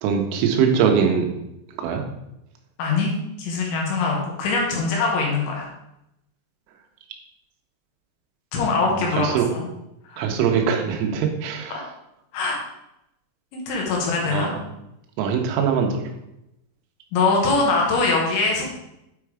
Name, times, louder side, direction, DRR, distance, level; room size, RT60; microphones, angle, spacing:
voice 1, 0.0-1.3 1.8-2.0 9.1-9.5 10.2-11.8 14.3-14.6 15.2-16.0, right 7 dB, 80° right, 3 dB, 3.4 m, -22 dB
voice 2, 2.8-3.1 3.4-5.7 8.5-9.7 10.1-10.3 12.3-12.6 13.5-14.5 17.1-18.7, left 3 dB, 75° left, -1 dB, 3.5 m, -22 dB
8.7 x 4.5 x 4.8 m, 0.86 s
omnidirectional pair, 6.0 m